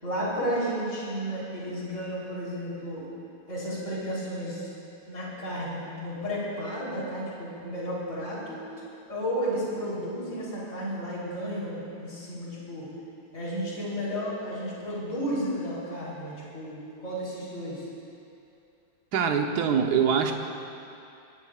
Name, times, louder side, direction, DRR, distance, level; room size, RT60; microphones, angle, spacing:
voice 1, 0.0-3.1 3.5-4.7 5.1-8.7 9.1-12.9 13.3-17.8, equal, 35° left, -7 dB, 4.2 m, -32 dB
voice 2, 19.1-20.3, right 7 dB, 55° right, 4 dB, 1.4 m, -23 dB
22.5 x 18.0 x 2.5 m, 2.7 s
omnidirectional pair, 2.3 m